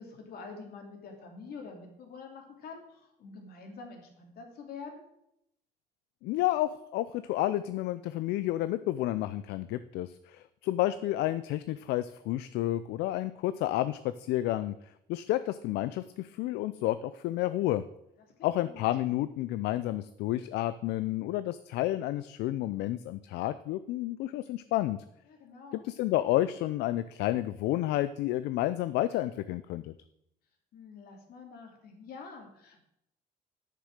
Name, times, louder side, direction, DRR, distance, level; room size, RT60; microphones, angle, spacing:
voice 1, 0.0-5.0 18.2-18.9 25.3-25.9 30.7-32.8, left 4 dB, 65° left, 2 dB, 2.7 m, -47 dB
voice 2, 6.2-14.7 15.1-17.8 18.4-25.0 25.8-29.9, left 14 dB, 80° left, 13 dB, 0.5 m, -30 dB
9.7 x 6.8 x 6.5 m, 0.79 s
cardioid pair, 110°, 17 cm